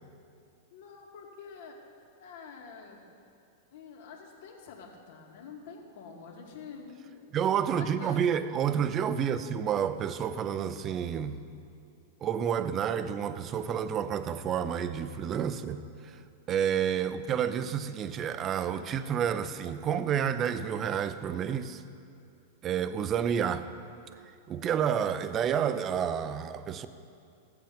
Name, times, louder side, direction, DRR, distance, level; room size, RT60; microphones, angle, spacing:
voice 1, 0.7-1.8 2.2-3.1 3.7-7.3 7.6-8.2 9.1-9.4, left 6 dB, 65° left, 2.3 m, -47 dB
voice 2, 7.3-11.4 12.2-16.1 16.5-21.8 22.6-23.7 24.5-26.9, right 8 dB, 30° right, 0.6 m, -29 dB
15.0 x 7.8 x 5.3 m
hypercardioid pair, 115°, 0 cm